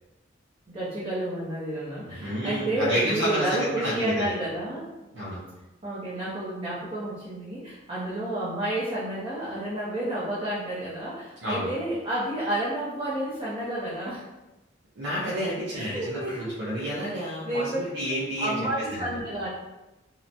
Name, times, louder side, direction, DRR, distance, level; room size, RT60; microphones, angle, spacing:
voice 1, 0.7-4.9 5.8-14.2 15.7-16.8 17.4-17.8 18.4-19.5, right 1 dB, 30° right, -10 dB, 0.6 m, -30 dB
voice 2, 2.1-4.2 5.1-5.4 11.4-11.7 15.0-18.5 18.9-19.2, equal, 75° right, -8 dB, 0.6 m, -30 dB
2.8 x 2.1 x 2.5 m, 1.0 s
head